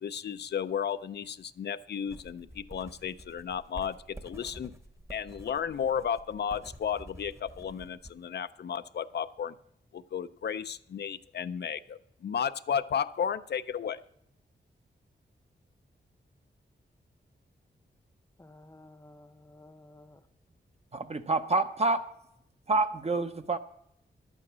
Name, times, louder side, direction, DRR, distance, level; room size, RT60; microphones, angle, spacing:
voice 1, 0.0-4.7 5.1-9.5 9.9-14.0, left 8 dB, 65° left, 0.5 m, -33 dB
sound 1, 2.1-8.1, right 1 dB, 15° right, 1.0 m, -49 dB
voice 2, 18.4-20.2, left 2 dB, 15° left, 0.8 m, -53 dB
voice 3, 20.9-22.1 22.7-23.6, right 3 dB, 35° right, 0.7 m, -28 dB
11.0 x 8.8 x 6.1 m
wide cardioid pair, 120°, 19 cm